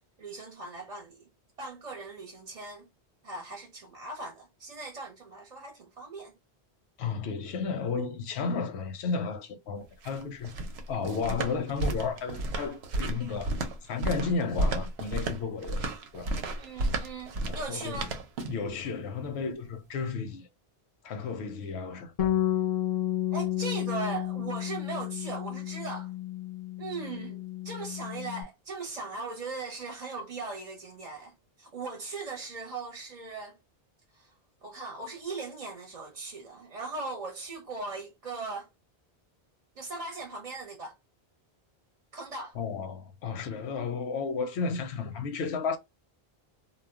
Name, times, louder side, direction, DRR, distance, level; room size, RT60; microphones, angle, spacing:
voice 1, 0.2-1.3 1.6-2.9 3.2-6.3 16.5-18.1 23.3-26.1 26.8-27.4 27.6-31.3 31.6-33.6 34.1-34.3 34.6-38.7 39.8-40.9 42.1-42.6, right 3 dB, 45° right, 0.6 m, -39 dB
voice 2, 7.0-10.5 10.9-13.6 13.9-16.3 17.5-18.1 18.5-20.5 21.0-22.3 42.5-45.8, left 5 dB, 90° left, 0.8 m, -33 dB
sound 1, 9.8-18.7, right 2 dB, 85° right, 0.8 m, -32 dB
Bass guitar, 22.2-28.4, left 12 dB, 50° left, 0.5 m, -32 dB
2.2 x 2.1 x 3.4 m
omnidirectional pair, 1.1 m